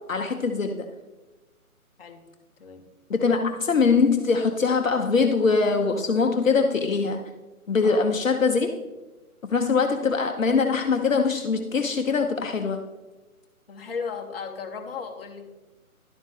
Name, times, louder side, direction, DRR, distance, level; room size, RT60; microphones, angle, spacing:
voice 1, 0.1-0.9 3.1-7.2 7.7-8.8 9.5-12.8, left 4 dB, 60° left, 4 dB, 0.9 m, -22 dB
voice 2, 2.6-2.9 7.8-8.1 13.7-15.5, left 5 dB, 40° left, 4 dB, 1.1 m, -35 dB
11.5 x 7.2 x 3.6 m, 1.1 s
figure-of-eight pair, 140°, 44 cm